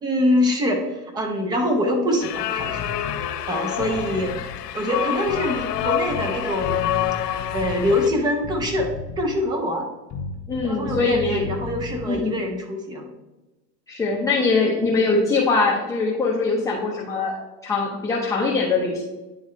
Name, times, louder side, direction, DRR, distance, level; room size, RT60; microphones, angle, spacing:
voice 1, 0.0-0.8 1.1-3.0 3.5-4.4 4.7-6.9 7.5-9.9 10.6-13.1, left 1 dB, 10° right, 4 dB, 0.3 m, -24 dB
sound 1, 2.2-8.1, left 11 dB, 85° left, 0.8 m, -27 dB
sound 2, 2.6-3.2 3.7-4.5 5.3-6.3 6.6-8.1 8.4-9.4 10.1-12.2, left 4 dB, 35° left, 1.0 m, -34 dB
voice 2, 10.5-11.5 12.1-12.4 13.9-17.4 17.6-19.0, left 3 dB, 5° left, -4 dB, 0.7 m, -22 dB
10.0 x 3.6 x 3.1 m, 1.1 s
hypercardioid pair, 120°, 47 cm